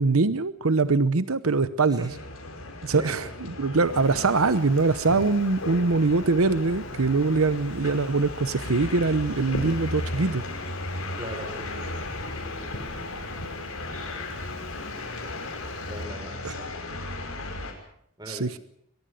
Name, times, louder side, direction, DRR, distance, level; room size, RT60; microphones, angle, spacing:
voice 1, 0.0-2.1 2.8-10.4 16.4-16.5 18.3-18.6, right 3 dB, 85° right, 14 dB, 0.9 m, -23 dB
sound 1, 2.1-17.7, left 2 dB, 85° left, 5.6 m, -36 dB
Wind, 3.7-16.0, left 1 dB, 60° left, 4.0 m, -43 dB
voice 2, 11.2-11.9 15.9-16.7 18.2-18.5, equal, 20° right, 5 dB, 5.7 m, -39 dB
22.5 x 21.5 x 6.5 m, 0.70 s
head